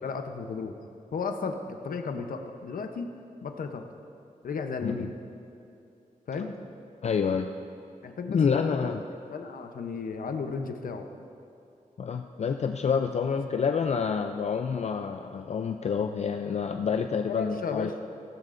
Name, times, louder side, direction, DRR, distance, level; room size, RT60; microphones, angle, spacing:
voice 1, 0.0-0.7 1.1-3.1 3.4-3.9 4.4-5.1 6.3-6.6 8.0-8.9 9.3-11.1 13.2-13.3 17.3-17.9, left 5 dB, 85° left, 5 dB, 0.8 m, -34 dB
voice 2, 7.0-7.5 8.3-9.0 12.0-17.9, left 6 dB, 50° left, 5 dB, 0.4 m, -28 dB
16.0 x 15.0 x 2.6 m, 2.7 s
wide cardioid pair, 140°, 14 cm